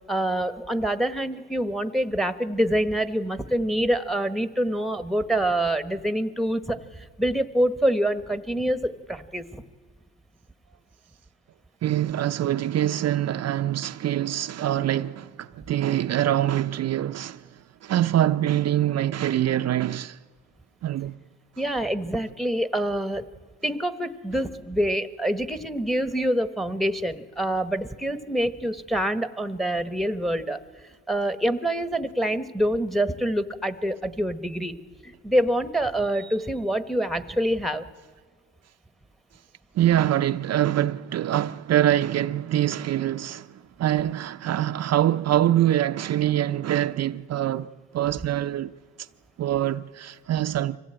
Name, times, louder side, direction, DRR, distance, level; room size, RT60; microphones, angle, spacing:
voice 1, 0.1-9.6 21.6-23.3 23.6-30.6 31.1-34.7 35.0-37.9, right 1 dB, ahead, 1.2 m, -26 dB
voice 2, 11.8-20.2 20.8-21.2 39.7-48.7 49.0-49.1 49.4-50.8, right 12 dB, 55° right, 0.6 m, -24 dB
25.0 x 16.5 x 8.8 m
cardioid pair, 90°, 30 cm